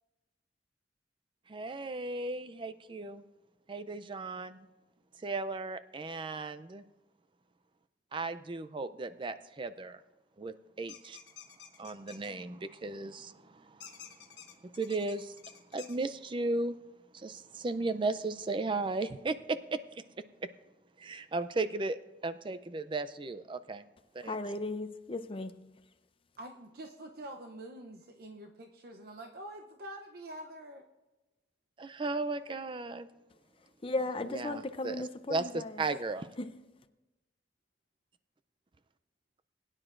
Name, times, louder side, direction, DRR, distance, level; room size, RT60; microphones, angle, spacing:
voice 1, 1.5-3.2 3.7-4.7 5.2-6.8 8.1-10.0 10.4-11.2 11.8-13.9 14.7-15.4 15.7-16.8 17.1-19.8 21.0-23.8 24.1-24.3 31.8-33.1 34.3-35.0 35.3-36.3, right 3 dB, 30° right, 0.4 m, -35 dB
sound 1, 10.9-12.3 13.8-16.0, left 8 dB, 70° left, 1.4 m, -50 dB
voice 2, 24.2-25.5 33.8-35.8 36.4-36.5, left 2 dB, 30° left, 0.6 m, -36 dB
voice 3, 26.4-30.8, right 1 dB, 60° right, 0.7 m, -46 dB
21.0 x 9.9 x 2.5 m
head